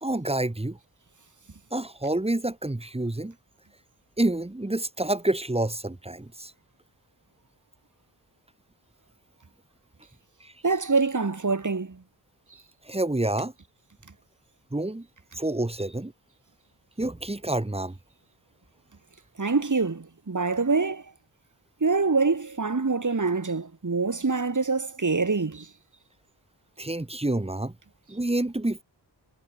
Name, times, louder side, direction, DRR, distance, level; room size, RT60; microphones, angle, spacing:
voice 1, 0.0-0.8 1.7-3.3 4.2-6.5 10.4-10.5 12.8-13.5 14.7-15.1 15.3-16.1 17.0-18.0 26.8-27.7 28.1-28.8, right 1 dB, 15° right, 1.5 m, -28 dB
voice 2, 10.6-12.0 19.4-21.0 21.8-25.7, right 4 dB, 45° right, 3.3 m, -25 dB
wide cardioid pair, 85°, 43 cm